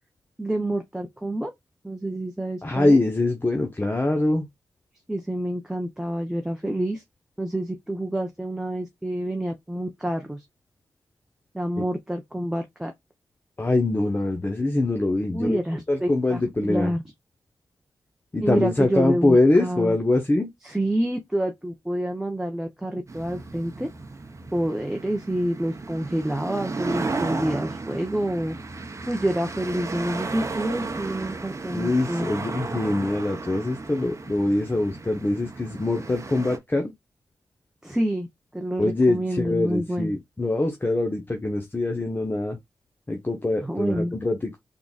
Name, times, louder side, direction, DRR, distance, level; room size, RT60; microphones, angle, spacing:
voice 1, 0.4-1.5 1.8-3.0 5.1-7.0 7.4-10.4 11.5-12.9 15.3-17.0 18.4-20.0 20.6-23.9 24.5-28.5 29.1-32.3 37.8-38.3 38.5-40.1 43.6-44.1, right 1 dB, 5° right, 0.8 m, -28 dB
voice 2, 2.6-4.5 11.8-11.9 13.6-15.6 15.9-16.9 18.3-20.5 31.7-36.9 38.8-42.6 43.1-44.6, left 2 dB, 25° left, 0.9 m, -23 dB
sound 1, 23.1-36.6, right 3 dB, 40° right, 0.8 m, -34 dB
3.8 x 3.6 x 2.4 m
cardioid pair, 55°, 8 cm